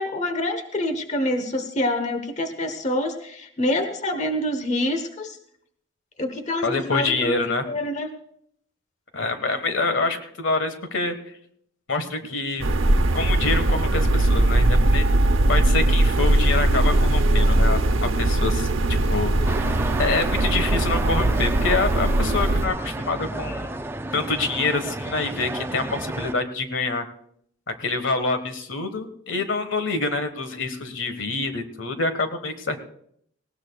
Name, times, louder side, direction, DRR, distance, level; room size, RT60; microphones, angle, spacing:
voice 1, 0.0-5.4 6.2-7.3 7.7-8.1, left 1 dB, 35° left, 7 dB, 1.1 m, -26 dB
voice 2, 6.6-7.7 9.1-11.1 11.9-12.7 13.1-15.0 15.5-18.7 19.1-19.5 20.0-23.7 24.1-27.0 27.8-32.8, left 3 dB, 80° left, 9 dB, 1.5 m, -26 dB
sound 1, 12.6-22.7, right 1 dB, 85° right, 0.9 m, -20 dB
sound 2, 19.5-26.3, right 2 dB, 10° right, 0.5 m, -31 dB
19.0 x 18.0 x 2.4 m, 0.67 s
head